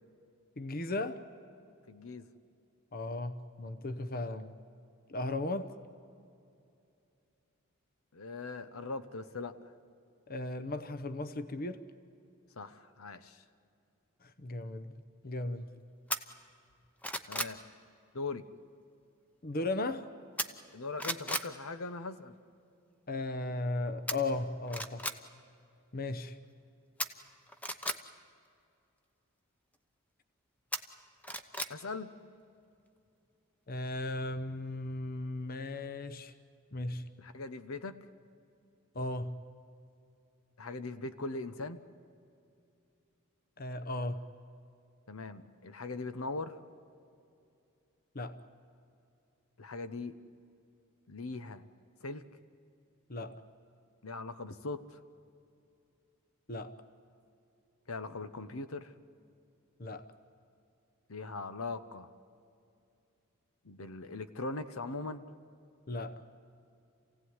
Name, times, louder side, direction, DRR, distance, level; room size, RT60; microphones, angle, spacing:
voice 1, 0.6-1.2 2.9-4.5 5.1-5.7 10.3-11.8 14.2-14.9 15.2-15.7 19.4-20.1 23.1-25.1 25.9-26.3 33.7-36.3 36.7-37.0 38.9-39.4 43.6-44.2 48.1-48.4 53.1-53.4 56.5-56.7 59.8-60.1 65.9-66.2, left 2 dB, 45° left, 10 dB, 0.9 m, -36 dB
voice 2, 1.9-2.3 8.1-9.7 12.6-13.4 17.3-17.6 18.1-18.4 20.7-22.3 31.7-32.1 37.2-38.0 40.6-41.8 45.1-46.6 49.6-50.2 51.1-51.6 52.0-52.2 54.0-55.0 57.9-58.9 61.1-62.1 63.6-65.2, left 3 dB, 75° left, 11 dB, 1.0 m, -40 dB
sound 1, 16.1-16.2 16.7-17.6 20.4-20.7 21.0-21.5 24.1-24.2 24.7-25.2 27.0-28.0 30.7-31.7 32.1-32.2, left 1 dB, 5° left, 0.9 m, -35 dB
27.5 x 17.0 x 9.7 m, 2.6 s
head